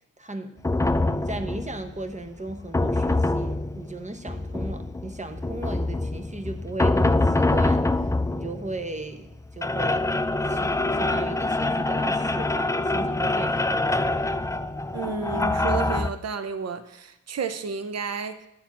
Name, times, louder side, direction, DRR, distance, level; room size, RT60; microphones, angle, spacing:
voice 1, 0.2-10.1 10.5-13.7, right 2 dB, 20° right, 8 dB, 0.9 m, -36 dB
sound 1, 0.6-16.1, left 2 dB, 10° left, 0.4 m, -25 dB
voice 2, 14.9-18.5, right 5 dB, 50° right, 11 dB, 0.7 m, -31 dB
8.6 x 4.3 x 7.2 m, 0.86 s
cardioid pair, 60°, 32 cm